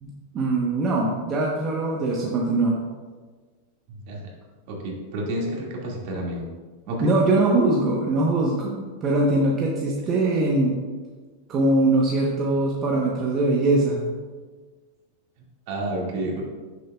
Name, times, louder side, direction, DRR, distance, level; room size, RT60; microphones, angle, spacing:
voice 1, 0.0-2.8 7.0-10.8 11.5-14.1, right 2 dB, 25° right, -3 dB, 0.9 m, -22 dB
voice 2, 4.7-6.5 6.9-7.1 10.0-10.2 15.7-16.4, right 1 dB, 50° right, -2 dB, 2.0 m, -30 dB
9.9 x 6.7 x 2.3 m, 1.4 s
supercardioid pair, 150°, 0 cm